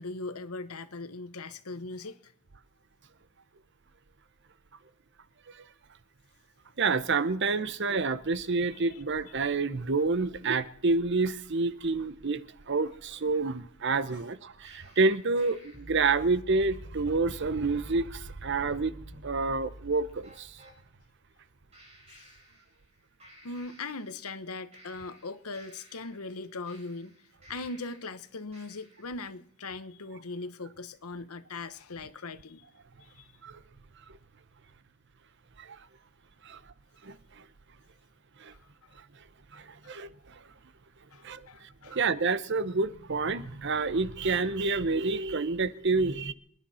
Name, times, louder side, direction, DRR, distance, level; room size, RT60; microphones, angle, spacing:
voice 1, 0.0-2.3 22.1-22.3 23.4-27.2 27.5-32.6 33.0-33.3 38.8-38.9 39.8-39.9 41.1-42.0, left 3 dB, 85° left, 1.2 m, -40 dB
voice 2, 6.8-18.9 19.2-20.6 33.4-33.6 35.6-35.8 36.4-36.6 37.0-37.4 38.4-38.5 39.5-40.4 41.2-46.3, right 3 dB, 55° right, 0.8 m, -28 dB
sound 1, 14.6-20.8 21.7-22.9 23.2-24.4 24.7-28.1 28.5-29.2, right 1 dB, 30° right, 5.5 m, -50 dB
27.0 x 10.5 x 4.3 m
head